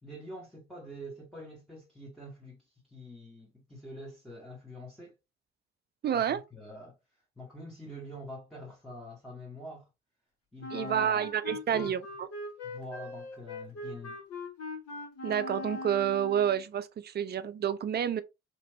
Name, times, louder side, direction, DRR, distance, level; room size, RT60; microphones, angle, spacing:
voice 1, 0.0-2.6 2.9-5.1 6.1-7.0 7.4-9.9 10.5-12.0 12.6-14.2, equal, ahead, 1.2 m, -45 dB
voice 2, 6.0-6.4 10.7-12.3 15.2-18.2, right 9 dB, 30° right, 0.4 m, -29 dB
Wind instrument woodwind instrument, 10.6-16.6, left 2 dB, 50° left, 1.4 m, -41 dB
3.0 x 2.6 x 2.7 m
hypercardioid pair, 50°, 32 cm